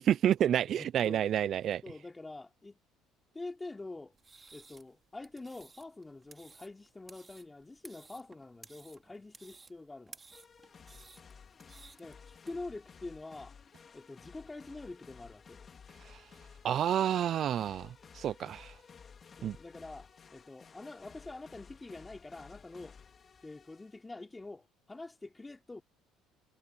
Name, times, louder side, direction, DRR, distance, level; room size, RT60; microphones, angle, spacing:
voice 1, 0.0-1.8 16.6-17.9 18.2-18.7 19.4-19.6, right 10 dB, 55° right, 0.3 m, -29 dB
voice 2, 0.7-1.2 1.8-2.8 3.3-4.1 4.5-10.2 12.0-13.5 13.9-15.6 19.4-23.0 23.4-25.8, left 2 dB, 15° left, 3.2 m, -46 dB
sound 1, 4.1-12.5, right 4 dB, 25° right, 2.5 m, -57 dB
sound 2, 10.3-24.0, left 6 dB, 35° left, 2.9 m, -55 dB
cardioid pair, 100°, 0 cm